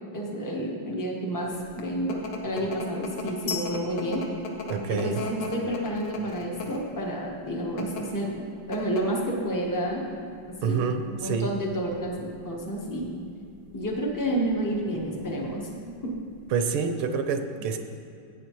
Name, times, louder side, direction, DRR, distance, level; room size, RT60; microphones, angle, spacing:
voice 1, 0.1-2.2 2.4-4.2 4.9-10.0 10.6-10.9 11.2-13.1 13.7-15.6 16.0-16.1, right 1 dB, 30° left, -2 dB, 0.3 m, -30 dB
sound 1, 1.5-16.7, left 3 dB, 85° left, 1.9 m, -40 dB
sound 2, 3.5-5.4, left 6 dB, 65° left, 1.0 m, -38 dB
sound 3, 4.6-8.2 8.9-9.1 10.9-12.4 14.1-15.6, right 2 dB, 55° right, 0.8 m, -48 dB
voice 2, 4.7-5.2 10.6-11.5 16.5-17.8, right 6 dB, 75° right, 7 dB, 1.5 m, -27 dB
14.0 x 8.9 x 3.0 m, 2.5 s
omnidirectional pair, 2.4 m